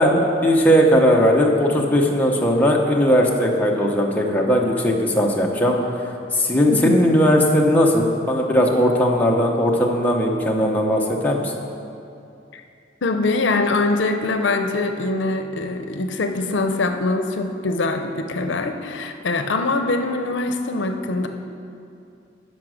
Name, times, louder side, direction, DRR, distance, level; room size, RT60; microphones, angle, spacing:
voice 1, 0.0-5.8 6.3-11.5, equal, 10° left, -1 dB, 0.8 m, -18 dB
voice 2, 6.7-7.0 12.5-12.6 13.0-21.3, left 3 dB, 80° left, 6 dB, 0.6 m, -23 dB
11.0 x 5.2 x 6.3 m, 2.6 s
head